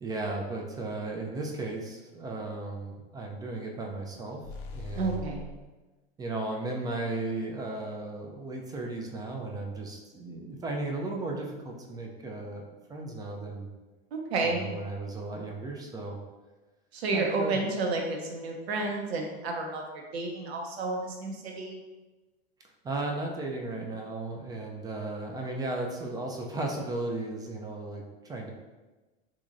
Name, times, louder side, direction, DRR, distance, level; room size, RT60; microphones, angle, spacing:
voice 1, 0.0-4.4 4.7-5.2 6.2-13.7 14.4-16.2 17.1-17.6 22.8-28.5, right 2 dB, 15° right, 0 dB, 0.4 m, -35 dB
sound 1, 4.4-5.6, left 3 dB, 45° left, 0.6 m, -40 dB
voice 2, 4.9-5.5 14.1-14.7 16.9-19.8 20.1-21.8, right 3 dB, 80° right, 1 dB, 0.8 m, -31 dB
3.5 x 3.1 x 2.5 m, 1.2 s
hypercardioid pair, 115°, 31 cm